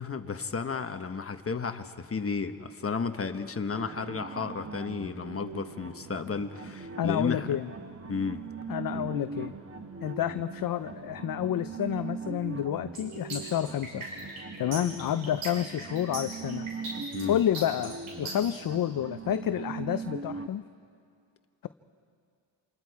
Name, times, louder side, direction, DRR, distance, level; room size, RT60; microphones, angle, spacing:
voice 1, 0.0-7.5 8.1-8.4 8.9-9.1 17.1-17.4, left 5 dB, 30° left, 7 dB, 1.1 m, -33 dB
Retro Synth Loop Tape Chop, 3.7-20.5, right 4 dB, 30° right, 1.1 m, -40 dB
voice 2, 7.0-7.7 8.7-9.5 10.0-14.0 14.6-16.7 17.3-20.6, left 10 dB, 45° left, 11 dB, 0.5 m, -29 dB
sound 1, 12.9-18.6, right 2 dB, 90° right, 6.7 m, -38 dB
28.0 x 27.5 x 4.8 m, 2.3 s
cardioid pair, 110°, 48 cm